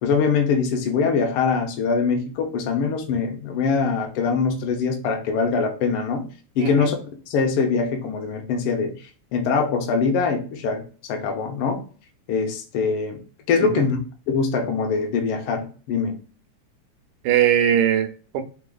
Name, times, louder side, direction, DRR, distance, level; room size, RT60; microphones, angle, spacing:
voice 1, 0.0-6.3 6.6-7.0 7.3-8.9 9.3-11.8 12.3-13.2 13.5-14.0 14.3-16.2, left 5 dB, 85° left, 3 dB, 1.2 m, -23 dB
voice 2, 6.6-6.9 13.6-13.9 17.2-18.4, right 10 dB, 80° right, 7 dB, 2.1 m, -20 dB
4.9 x 3.5 x 2.3 m, 0.39 s
omnidirectional pair, 3.7 m